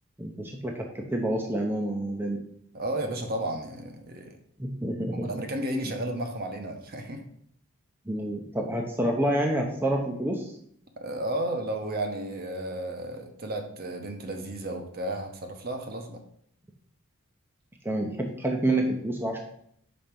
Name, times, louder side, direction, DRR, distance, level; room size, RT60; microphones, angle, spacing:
voice 1, 0.2-2.4 4.6-5.4 8.1-10.5 17.8-19.4, right 1 dB, 10° right, 1 dB, 0.6 m, -28 dB
voice 2, 2.7-4.3 5.1-7.2 11.0-16.2, right 1 dB, 45° right, 4 dB, 0.9 m, -33 dB
5.2 x 4.3 x 5.9 m, 0.68 s
head